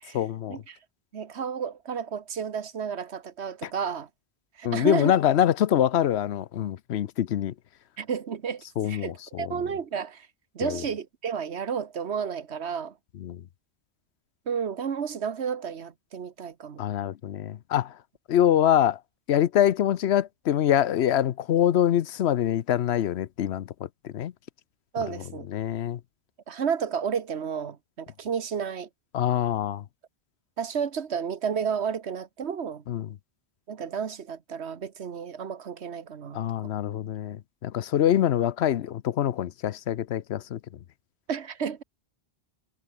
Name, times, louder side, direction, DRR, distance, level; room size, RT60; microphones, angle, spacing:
voice 1, 0.1-0.6 3.6-3.7 4.6-7.5 8.8-9.6 10.6-10.8 13.2-13.4 16.8-17.9 18.3-19.0 19.3-23.7 24.0-24.3 25.5-26.0 29.1-29.8 32.9-33.1 36.3-40.6, left 10 dB, 85° left, 1.0 m, -24 dB
voice 2, 1.1-4.1 4.6-5.2 8.0-10.3 10.5-13.0 14.5-16.8 24.9-25.5 26.5-28.9 30.6-32.8 33.7-36.4 38.2-38.3 41.3-41.8, right 7 dB, 85° right, 1.5 m, -32 dB
omnidirectional pair, 1.1 m